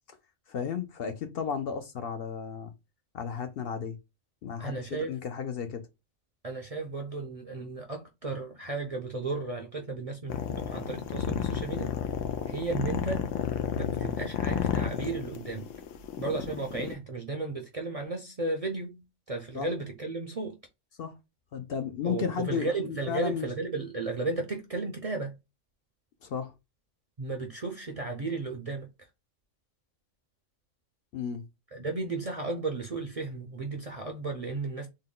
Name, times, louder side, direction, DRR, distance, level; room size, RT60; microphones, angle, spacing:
voice 1, 0.5-2.7 3.1-4.0 4.4-5.8 19.5-19.7 21.0-21.1 21.5-23.5 26.2-26.5 31.1-31.4, left 7 dB, 60° left, 0.7 m, -33 dB
voice 2, 4.6-5.2 6.4-11.9 12.5-13.3 13.7-15.7 16.2-20.6 22.0-25.3 27.2-28.9 31.7-34.9, right 3 dB, 45° right, 0.5 m, -34 dB
sound 1, 10.3-16.9, left 9 dB, 90° left, 0.9 m, -32 dB
3.7 x 2.1 x 3.7 m
omnidirectional pair, 1.3 m